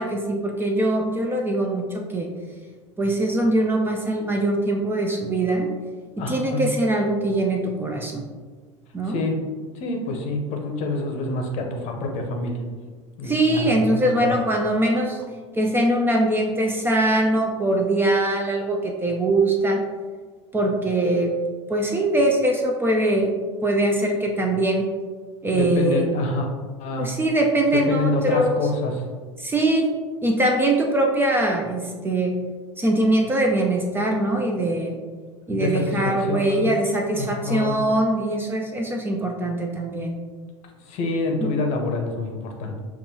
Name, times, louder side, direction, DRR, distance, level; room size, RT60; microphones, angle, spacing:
voice 1, 0.0-2.3 3.0-5.7 6.3-8.2 8.9-9.2 13.2-15.2 15.6-19.8 20.5-21.3 21.7-24.9 25.4-26.1 27.0-28.6 29.4-29.9 30.2-32.4 32.8-35.0 35.5-40.1 41.4-41.5, right 1 dB, 15° right, 1 dB, 0.5 m, -22 dB
voice 2, 6.2-6.7 9.1-9.4 9.7-12.6 13.2-14.4 25.5-26.5 26.8-27.1 27.9-29.0 35.5-36.8 37.1-37.8 40.9-42.8, left 2 dB, 45° left, 2 dB, 0.8 m, -27 dB
6.7 x 2.5 x 2.7 m, 1.5 s
figure-of-eight pair, 75°, 16 cm